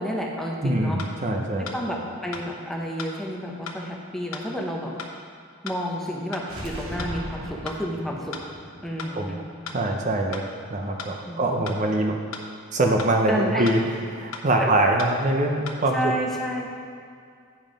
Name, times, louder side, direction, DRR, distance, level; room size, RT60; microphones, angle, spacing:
voice 1, 0.0-1.0 1.6-4.9 5.6-8.4 8.8-9.4 11.2-11.6 13.3-13.7 14.6-14.7 15.9-16.7, equal, ahead, -1 dB, 0.7 m, -30 dB
voice 2, 0.6-1.7 9.1-9.4 9.7-12.1 12.7-16.1, right 1 dB, 35° right, 2 dB, 0.6 m, -24 dB
sound 1, 1.0-1.1 1.7-1.8 2.3-2.5 3.0-3.1 3.7-3.8 4.3-4.5 5.0-5.1 5.7-5.8 6.3-6.5 7.0-7.1 7.7-7.8 8.3-8.5 9.0-9.1 9.7-9.8 10.3-10.5 11.0-11.1 11.7-11.8 12.3-12.5 13.0-13.1 13.7-13.8 14.3-14.5 15.0-15.1 15.7-15.8, left 5 dB, 75° left, 0.9 m, -36 dB
sound 2, 6.4-10.2, equal, 80° right, 1.2 m, -38 dB
9.5 x 5.4 x 5.1 m, 2.3 s
head